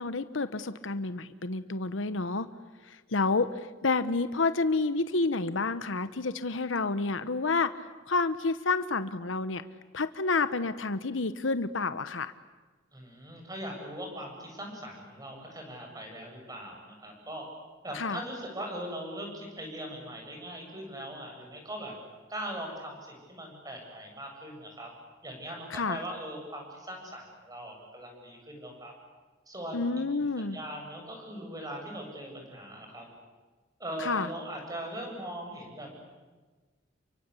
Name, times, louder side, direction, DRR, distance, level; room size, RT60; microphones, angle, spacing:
voice 1, 0.0-2.5 3.1-3.5 3.8-7.7 8.1-9.6 9.9-12.3 17.9-18.2 25.7-26.0 29.7-30.6 34.0-34.3, left 3 dB, 80° left, 12 dB, 1.0 m, -29 dB
voice 2, 12.9-17.4 17.8-21.9 22.3-24.9 25.2-28.9 29.5-29.8 30.1-33.1 33.8-36.0, right 1 dB, 20° right, 2 dB, 7.7 m, -40 dB
29.5 x 23.5 x 8.4 m, 1.3 s
head